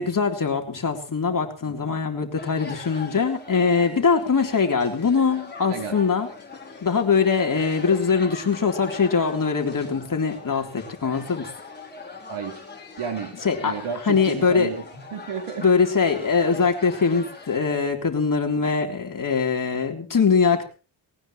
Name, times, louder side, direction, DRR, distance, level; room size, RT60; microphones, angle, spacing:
voice 1, 0.0-6.3 6.8-11.5 13.4-13.8 14.0-14.7 15.6-20.6, left 5 dB, 40° left, 3 dB, 3.8 m, -22 dB
sound 1, 2.3-17.6, left 3 dB, 20° left, 4.8 m, -41 dB
voice 2, 5.7-6.0 12.3-12.6 13.0-13.4 13.6-14.8 15.1-15.7, right 6 dB, 80° right, 4 dB, 4.3 m, -31 dB
20.0 x 18.5 x 3.2 m, 0.35 s
cardioid pair, 110°, 50 cm